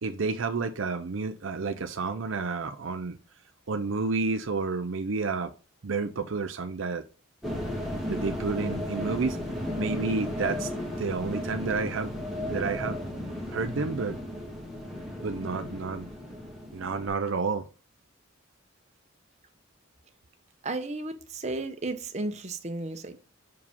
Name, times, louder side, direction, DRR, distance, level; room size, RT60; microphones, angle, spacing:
voice 1, 0.0-3.2 3.7-5.5 5.8-7.1 8.1-9.4 9.8-10.7 11.0-12.1 12.5-13.0 13.5-14.2 15.2-16.1 16.7-17.7, right 4 dB, 70° right, 0.6 m, -30 dB
sound 1, 7.4-17.1, left 1 dB, ahead, 1.5 m, -34 dB
voice 2, 20.6-23.2, right 2 dB, 35° right, 0.9 m, -33 dB
6.1 x 4.8 x 3.5 m
head